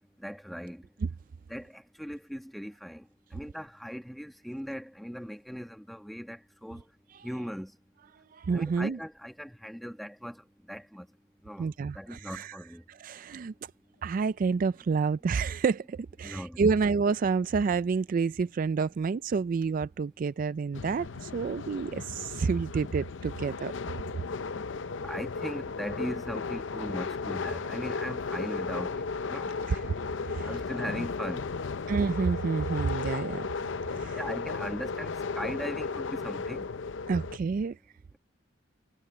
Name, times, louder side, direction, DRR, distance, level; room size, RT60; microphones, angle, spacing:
voice 1, 0.2-0.8 1.5-3.0 3.3-6.8 7.2-7.7 8.5-10.4 10.7-11.1 11.4-11.6 11.9-12.8 16.2-16.7 25.0-29.5 30.5-31.5 34.2-36.6, equal, ahead, 1.2 m, -39 dB
voice 2, 8.3-9.0 11.6-12.6 12.9-13.5 14.0-23.7 29.7-29.8 30.3-30.5 31.9-33.5 33.9-34.2 37.1-37.8, right 5 dB, 45° right, 0.3 m, -29 dB
sound 1, 20.7-37.4, left 4 dB, 70° left, 0.6 m, -35 dB
head